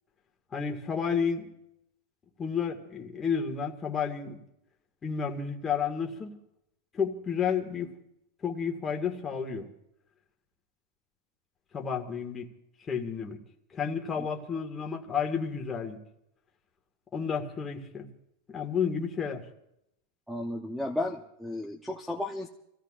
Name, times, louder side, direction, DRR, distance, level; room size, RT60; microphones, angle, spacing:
voice 1, 0.5-1.5 2.4-4.4 5.0-6.3 6.9-7.9 8.4-9.7 11.7-12.5 12.9-13.4 13.7-16.0 17.1-18.1 18.5-19.4, left 6 dB, 15° left, 1 dB, 1.8 m, -31 dB
voice 2, 20.3-22.5, left 1 dB, ahead, 5 dB, 0.7 m, -33 dB
28.5 x 16.0 x 2.5 m, 0.81 s
supercardioid pair, 160°, 0 cm